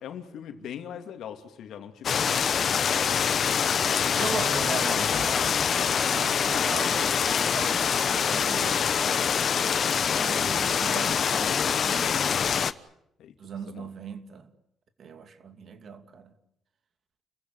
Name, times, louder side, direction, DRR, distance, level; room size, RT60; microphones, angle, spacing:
voice 1, 0.0-2.5 13.2-13.3 13.7-13.9, left 9 dB, 75° left, 2.8 m, -40 dB
sound 1, 2.0-12.7, left 7 dB, 50° left, 1.0 m, -25 dB
voice 2, 4.2-5.5 6.1-8.8 10.1-12.2 13.4-14.5 15.0-16.4, right 6 dB, 55° right, 2.6 m, -38 dB
29.5 x 15.5 x 9.8 m
cardioid pair, 95°, 0 cm